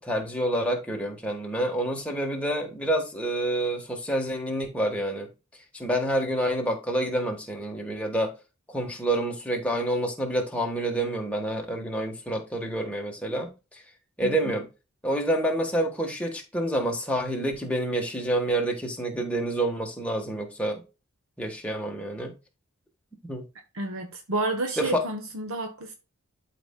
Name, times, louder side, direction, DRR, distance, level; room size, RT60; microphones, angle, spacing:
voice 1, 0.0-5.3 5.7-8.3 8.7-13.8 14.2-14.7 15.0-20.8 21.4-22.3 23.2-23.4 24.8-25.0, right 1 dB, 5° left, 1.3 m, -28 dB
voice 2, 14.2-14.5 23.7-25.9, right 2 dB, 70° right, 0.8 m, -30 dB
12.0 x 4.2 x 2.2 m
head